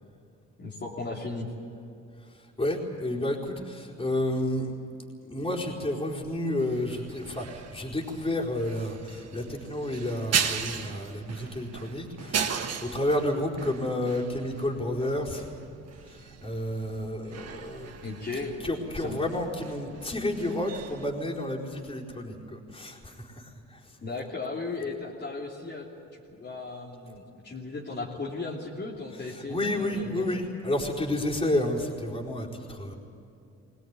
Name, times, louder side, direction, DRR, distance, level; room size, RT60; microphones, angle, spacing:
voice 1, 0.6-1.5 18.0-18.5 19.0-19.2 24.0-30.2, left 3 dB, 35° left, -5 dB, 3.1 m, -36 dB
voice 2, 2.2-4.7 5.2-15.5 16.1-17.9 18.3-24.0 29.1-33.0, left 1 dB, 20° left, -3 dB, 4.4 m, -31 dB
sound 1, 6.6-21.1, right 7 dB, 55° right, 1.7 m, -37 dB
22.0 x 18.0 x 9.6 m, 2.6 s
cardioid pair, 90°, 30 cm